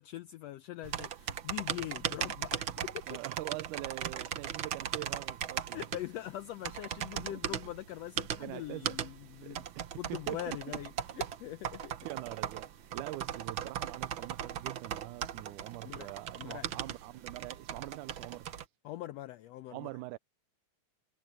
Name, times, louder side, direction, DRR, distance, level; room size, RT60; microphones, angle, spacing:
voice 1, 0.0-3.2 5.7-9.7 9.9-11.9 15.8-16.1 16.4-16.7 18.8-19.9, left 14 dB, 85° left, 1.5 m, -42 dB
sound 1, 0.8-18.6, right 9 dB, 65° right, 1.2 m, -38 dB
voice 2, 3.1-5.9 7.2-7.4 8.4-9.0 9.4-10.8 12.1-18.5 19.7-20.2, right 18 dB, 85° right, 2.2 m, -43 dB
omnidirectional pair, 3.5 m